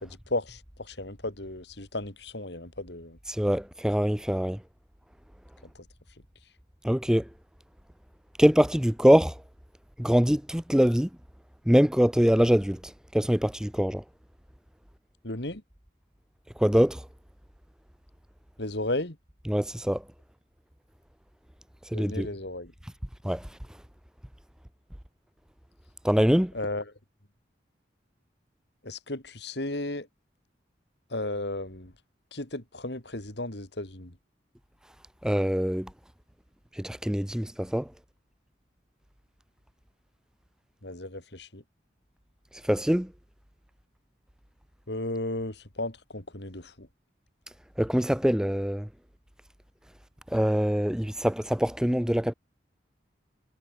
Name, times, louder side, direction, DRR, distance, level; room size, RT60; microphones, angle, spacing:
voice 1, 0.0-3.2 5.7-5.8 15.2-15.6 18.6-19.2 21.9-22.7 26.5-26.9 28.8-30.1 31.1-31.9 32.3-34.2 40.8-41.6 44.9-46.9, left 2 dB, 70° left, 3.4 m, -34 dB
voice 2, 3.3-4.6 6.8-7.2 8.4-9.4 10.0-11.1 11.7-14.0 16.6-17.0 19.5-20.0 21.9-22.3 23.2-23.5 26.0-26.5 35.2-35.9 36.8-37.9 42.6-43.1 47.8-48.9 50.3-52.3, equal, 5° right, 0.5 m, -23 dB
head